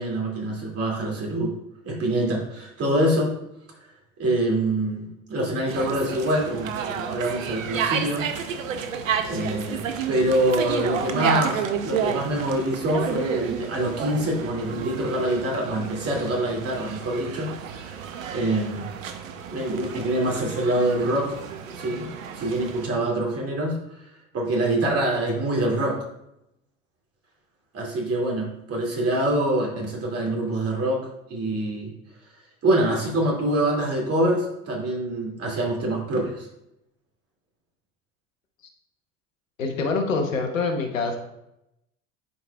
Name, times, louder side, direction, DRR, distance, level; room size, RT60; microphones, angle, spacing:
voice 1, 0.0-1.5 1.8-3.3 4.2-8.3 9.3-18.0 18.3-18.9 19.5-21.3 21.7-22.1 22.3-24.1 24.3-26.0 27.7-31.9 32.6-36.5, right 1 dB, 40° right, -1 dB, 2.5 m, -25 dB
sound 1, 5.7-22.9, right 7 dB, 85° right, 0.7 m, -31 dB
voice 2, 39.6-41.2, left 4 dB, 90° left, 4 dB, 1.0 m, -25 dB
11.0 x 4.8 x 2.3 m, 0.84 s
hypercardioid pair, 70°, 38 cm